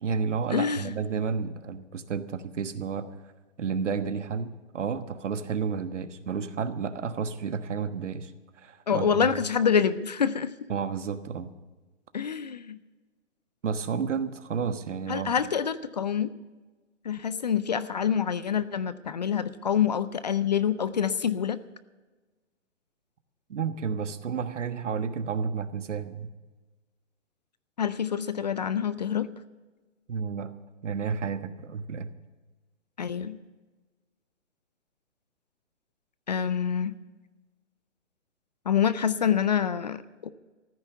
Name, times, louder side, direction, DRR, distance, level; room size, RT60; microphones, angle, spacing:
voice 1, 0.0-3.1 3.6-8.3 8.6-9.3 10.7-11.5 13.6-15.3 23.5-26.3 30.1-30.5 30.8-32.1, right 6 dB, 75° right, 10 dB, 1.4 m, -31 dB
voice 2, 0.5-0.9 8.9-10.7 12.1-12.8 15.1-16.3 17.0-21.6 27.8-29.3 33.0-33.4 36.3-36.9 38.7-40.3, left 7 dB, 35° left, 15 dB, 0.4 m, -26 dB
14.5 x 9.5 x 8.1 m, 1.2 s
hypercardioid pair, 155°, 37 cm